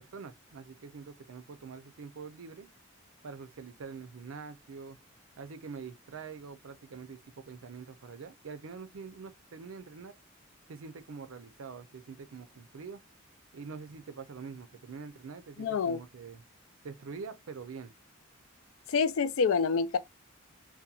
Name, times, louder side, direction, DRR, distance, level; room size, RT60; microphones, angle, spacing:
voice 1, 0.0-2.7 3.2-5.0 5.4-10.1 10.7-13.0 13.5-16.4 16.8-17.9, right 5 dB, 80° right, 0.5 m, -45 dB
voice 2, 15.6-16.0 18.9-20.0, left 5 dB, 75° left, 0.4 m, -27 dB
2.8 x 2.2 x 2.3 m
head